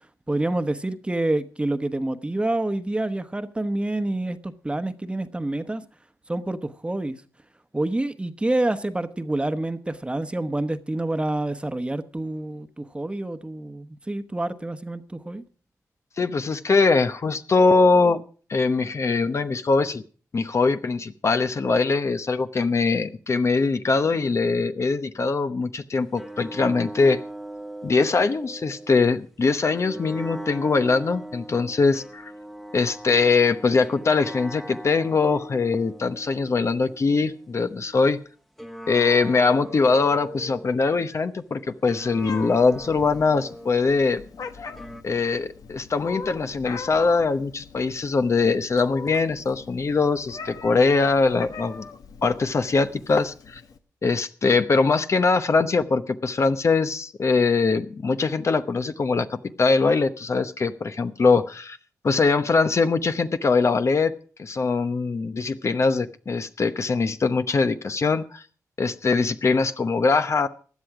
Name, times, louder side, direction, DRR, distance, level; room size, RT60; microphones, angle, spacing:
voice 1, 0.3-5.8 6.3-7.2 7.7-15.4, right 2 dB, 15° right, 1.1 m, -27 dB
voice 2, 16.2-18.2 18.5-20.0 20.3-27.2 27.8-32.3 32.7-38.2 38.9-44.2 45.0-51.8 52.2-53.6 54.0-61.8 62.0-64.1 64.4-68.4 68.8-70.5, left 4 dB, 50° left, 0.9 m, -22 dB
sound 1, 26.2-29.2 29.8-38.1 38.6-41.1 41.9-45.0, right 1 dB, 5° left, 1.2 m, -40 dB
Meow, 42.2-53.8, left 5 dB, 75° left, 1.2 m, -41 dB
16.0 x 10.5 x 4.9 m
cardioid pair, 70°, 6 cm